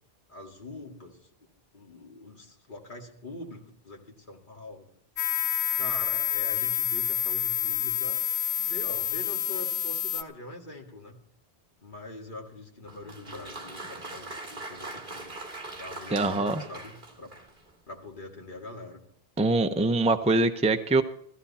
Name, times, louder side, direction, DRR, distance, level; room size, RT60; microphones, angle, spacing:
voice 1, 0.3-1.2 1.7-4.9 5.8-8.2 8.6-11.2 11.8-15.3 15.7-17.3 17.9-19.0, left 2 dB, 50° left, 0 dB, 2.3 m, -43 dB
sound 1, 5.2-10.2, left 10 dB, 90° left, 1.0 m, -28 dB
Applause, 12.8-17.7, right 2 dB, 55° right, 2.4 m, -41 dB
voice 2, 16.1-16.6 19.4-21.0, right 2 dB, 10° right, 7 dB, 0.6 m, -23 dB
15.0 x 14.5 x 4.2 m, 0.70 s
omnidirectional pair, 1.0 m